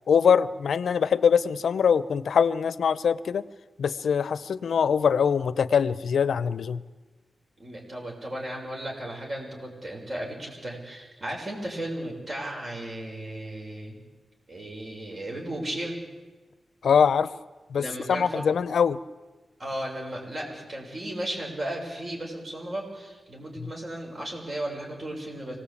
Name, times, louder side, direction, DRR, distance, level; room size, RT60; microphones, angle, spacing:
voice 1, 0.1-3.4 3.8-6.8 16.8-17.3 17.7-19.0 23.6-23.7, left 7 dB, 85° left, 14 dB, 0.7 m, -23 dB
voice 2, 7.6-14.0 14.5-16.0 17.7-18.4 19.6-25.6, right 1 dB, 40° right, 0 dB, 6.2 m, -35 dB
25.0 x 18.5 x 8.5 m, 1.3 s
wide cardioid pair, 160°, 0 cm